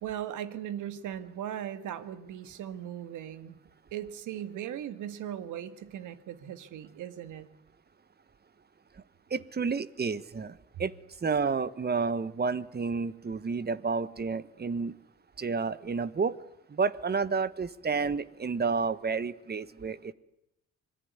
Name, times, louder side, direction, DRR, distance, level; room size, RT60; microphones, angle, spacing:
voice 1, 0.0-3.6 3.9-7.5, right 10 dB, 85° right, 11 dB, 2.0 m, -38 dB
voice 2, 9.3-10.9 11.2-14.9 15.4-16.4 16.7-20.1, right 5 dB, 30° right, 16 dB, 1.4 m, -30 dB
25.5 x 21.0 x 9.6 m, 0.82 s
cardioid pair, 90°, 30 cm